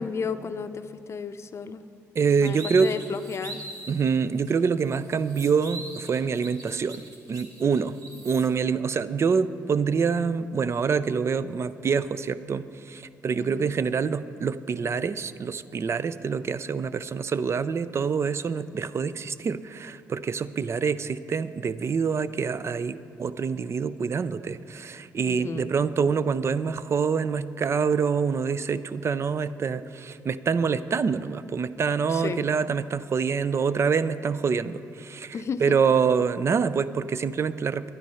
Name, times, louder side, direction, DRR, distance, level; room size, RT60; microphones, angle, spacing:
voice 1, 0.0-1.8 2.4-3.6 13.4-13.7 25.3-25.7 32.1-32.4 35.3-35.6, left 5 dB, 45° left, 10 dB, 0.6 m, -33 dB
voice 2, 2.2-2.9 3.9-8.0 8.2-35.3 35.6-37.9, right 6 dB, 45° right, 15 dB, 0.4 m, -26 dB
sound 1, 2.2-4.0 4.4-4.5 4.9-8.5, right 2 dB, 65° right, 1.6 m, -42 dB
11.0 x 10.5 x 5.6 m, 2.5 s
supercardioid pair, 60°, 6 cm